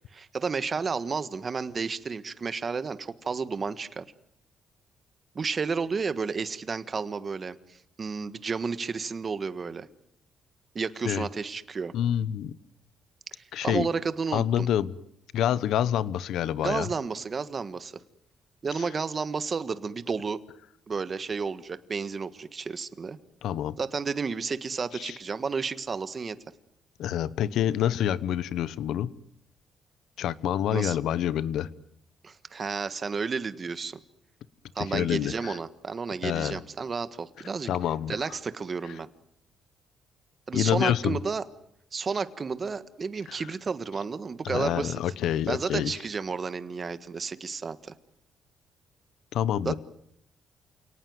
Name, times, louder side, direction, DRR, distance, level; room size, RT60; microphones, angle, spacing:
voice 1, 0.1-4.0 5.3-9.9 10.7-11.9 13.3-14.7 16.6-18.0 18.6-20.4 20.9-23.2 23.8-26.4 30.7-31.0 32.2-34.0 34.7-37.7 38.1-39.1 40.5-41.4 41.9-45.0 45.5-47.9 49.6-49.8, right 5 dB, 40° right, 13 dB, 1.5 m, -32 dB
voice 2, 11.9-12.5 13.5-13.9 14.3-14.9 15.3-16.9 23.4-23.7 25.0-25.2 27.0-29.1 30.2-31.7 34.8-35.6 36.2-36.6 37.6-38.1 40.5-41.2 43.3-43.4 44.4-45.9 49.3-49.7, left 10 dB, 80° left, 18 dB, 1.0 m, -27 dB
28.5 x 18.5 x 9.5 m, 0.74 s
cardioid pair, 90°, 0 cm